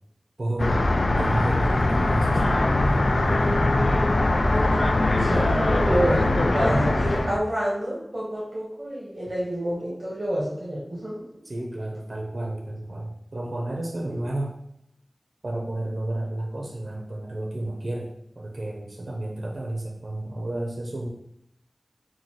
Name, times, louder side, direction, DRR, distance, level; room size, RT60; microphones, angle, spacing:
voice 1, 0.4-0.9 1.2-3.6 11.4-14.6 15.4-21.1, right 1 dB, 70° right, 0 dB, 0.7 m, -32 dB
sound 1, 0.6-7.4, left 2 dB, 75° left, 0.4 m, -21 dB
voice 2, 5.2-11.2, right 1 dB, 50° right, -7 dB, 1.3 m, -28 dB
3.9 x 2.4 x 4.6 m, 0.77 s
wide cardioid pair, 55°, 0 cm